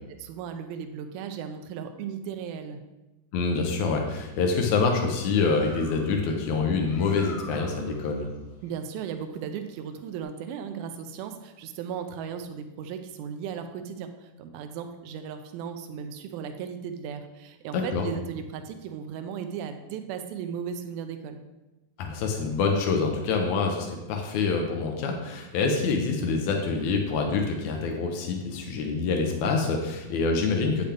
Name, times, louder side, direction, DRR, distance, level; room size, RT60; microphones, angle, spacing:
voice 1, 0.1-2.8 8.6-21.4, right 7 dB, 80° right, 7 dB, 2.4 m, -36 dB
voice 2, 3.3-8.3 17.7-18.0 22.0-30.8, left 4 dB, 85° left, 2 dB, 1.6 m, -26 dB
Bird, 5.3-10.2, left 2 dB, 40° left, 1.3 m, -47 dB
8.7 x 8.0 x 3.5 m, 1.1 s
omnidirectional pair, 4.7 m